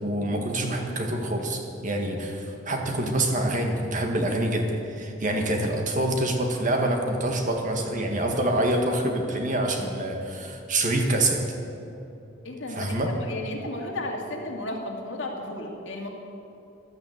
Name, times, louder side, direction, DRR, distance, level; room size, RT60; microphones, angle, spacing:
voice 1, 0.0-11.4 12.7-13.1, right 1 dB, 40° right, 3 dB, 1.7 m, -26 dB
voice 2, 12.4-16.1, left 1 dB, 65° left, 0 dB, 2.4 m, -34 dB
14.0 x 12.0 x 8.2 m, 2.9 s
head